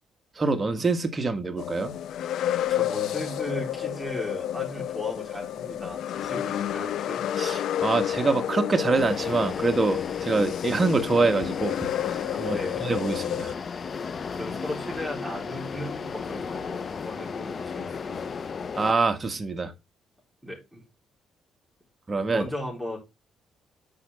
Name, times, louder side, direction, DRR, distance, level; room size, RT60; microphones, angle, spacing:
voice 1, 0.4-2.0 7.4-11.9 12.4-13.5 18.8-19.7 22.1-22.4, right 3 dB, 30° right, 1.6 m, -25 dB
sound 1, 1.6-13.5, left 11 dB, 75° left, 0.5 m, -30 dB
voice 2, 2.7-7.2 12.5-12.9 14.3-18.5 20.4-20.8 22.3-23.0, left 1 dB, 5° right, 4.2 m, -36 dB
sound 2, 8.9-18.9, left 5 dB, 45° left, 0.9 m, -35 dB
9.9 x 5.4 x 3.6 m
cardioid pair, 90°, 0 cm